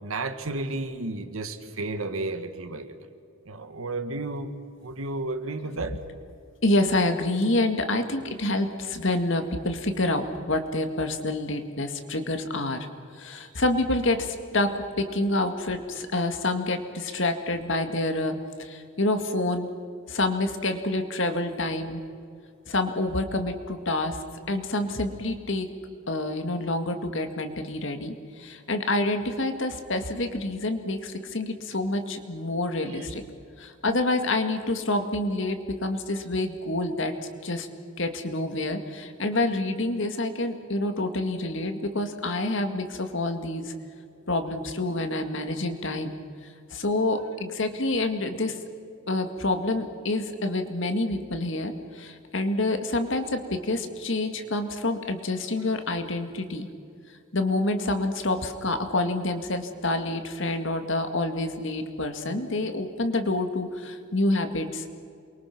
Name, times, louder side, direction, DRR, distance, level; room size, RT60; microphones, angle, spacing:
voice 1, 0.0-3.1 3.5-4.6 4.8-6.0 32.9-33.0, right 2 dB, 85° right, 8 dB, 1.8 m, -32 dB
voice 2, 6.6-12.9 13.2-19.7 20.1-22.0 22.7-25.7 26.1-33.2 33.6-37.1 37.4-37.7 38.0-43.7 44.3-46.1 46.7-48.6 49.1-56.7 57.3-64.9, left 2 dB, 60° left, 7 dB, 2.1 m, -27 dB
28.5 x 23.0 x 6.0 m, 2.4 s
head